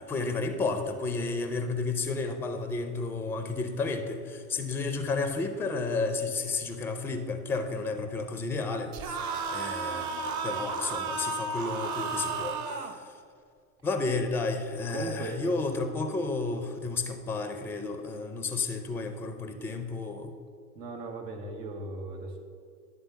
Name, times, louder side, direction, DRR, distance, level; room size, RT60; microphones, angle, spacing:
voice 1, 0.0-9.2 9.5-13.1 13.8-20.4, left 3 dB, 5° left, 7 dB, 0.4 m, -32 dB
sound 1, 8.9-12.9, right 4 dB, 35° right, 0.9 m, -33 dB
voice 2, 14.9-15.4 20.7-22.4, right 3 dB, 85° right, 2 dB, 1.5 m, -38 dB
11.0 x 3.7 x 6.8 m, 2.1 s
hypercardioid pair, 100°, 47 cm